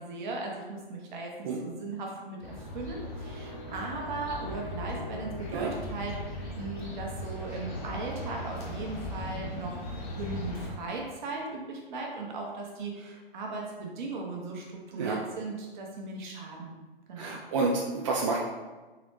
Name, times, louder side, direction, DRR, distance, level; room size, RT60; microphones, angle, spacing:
voice 1, 0.0-2.4 2.7-9.8 10.1-16.8 17.1-17.4, right 3 dB, 50° right, 0 dB, 1.0 m, -38 dB
sound 1, 2.4-10.7, left 1 dB, 25° left, 0.9 m, -38 dB
voice 2, 17.2-18.4, right 3 dB, 35° right, -2 dB, 0.4 m, -29 dB
3.9 x 3.1 x 3.1 m, 1.3 s
hypercardioid pair, 140°, 30 cm